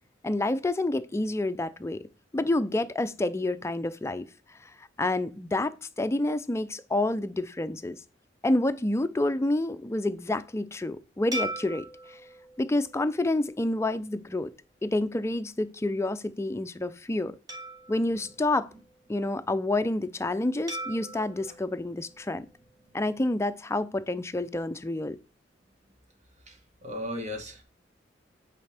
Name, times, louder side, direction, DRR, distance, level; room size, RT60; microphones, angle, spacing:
voice 1, 0.2-2.0 2.3-4.3 5.0-8.0 8.4-11.9 12.6-14.5 14.8-17.3 17.9-18.7 19.1-22.5 22.9-25.2, left 2 dB, 15° left, 0.4 m, -28 dB
sound 1, 11.3-14.0 14.6-14.8 17.5-19.3 20.7-23.0, right 1 dB, 20° right, 1.6 m, -41 dB
voice 2, 26.5-27.6, left 1 dB, 40° right, 1.6 m, -36 dB
8.3 x 4.2 x 3.4 m
head